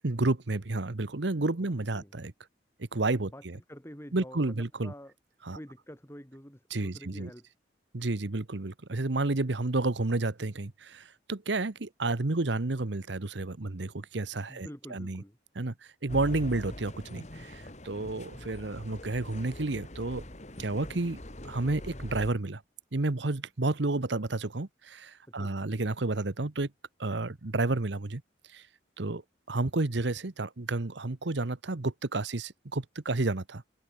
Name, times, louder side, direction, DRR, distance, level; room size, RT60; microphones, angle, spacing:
voice 1, 0.0-2.3 2.8-3.6 4.1-4.9 5.4-5.6 6.7-7.3 7.9-15.2 15.5-15.7 16.0-20.2 20.6-21.2 21.4-22.6 22.9-26.7 27.0-28.2 28.5-28.6 29.0-29.2 29.5-33.6, right 2 dB, 70° right, 1.1 m, -31 dB
voice 2, 1.6-2.1 3.3-5.1 5.5-7.5 14.5-15.4 25.3-25.7, equal, 15° left, 6.2 m, -48 dB
sound 1, 16.1-22.3, left 1 dB, 40° left, 2.9 m, -43 dB
head